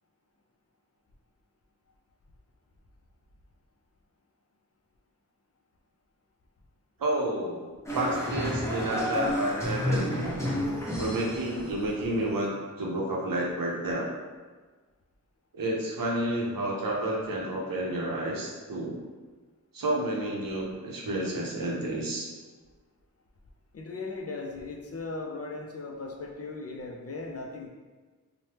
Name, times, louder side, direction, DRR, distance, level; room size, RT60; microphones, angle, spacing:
voice 1, 7.0-7.7 7.9-10.3 11.0-14.1 15.5-19.0 19.7-22.3, right 1 dB, 80° right, -2 dB, 0.6 m, -30 dB
sound 1, 7.9-12.4, left 1 dB, 10° left, 0.6 m, -31 dB
voice 2, 23.7-27.7, left 3 dB, 45° left, 1 dB, 0.4 m, -38 dB
3.2 x 2.1 x 2.8 m, 1.4 s
wide cardioid pair, 80°, 33 cm